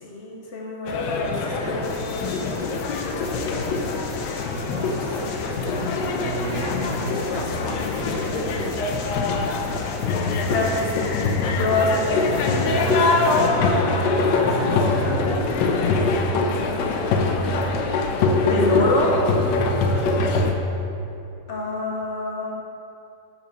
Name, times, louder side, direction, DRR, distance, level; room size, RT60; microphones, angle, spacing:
voice 1, 0.0-1.4 1.7-2.3 10.5-11.0 11.5-12.3 18.4-19.1 21.5-22.6, left 2 dB, 55° left, -1 dB, 0.8 m, -25 dB
sound 1, 0.9-20.5, left 3 dB, 70° left, 1.1 m, -23 dB
voice 2, 1.5-1.8 2.8-2.9 4.7-10.0 12.7-16.1 19.4-20.1, right 3 dB, 55° right, 1 dB, 0.8 m, -33 dB
sound 2, 1.8-13.5, left 4 dB, 85° left, 1.6 m, -41 dB
5.7 x 5.0 x 6.5 m, 2.7 s
omnidirectional pair, 2.1 m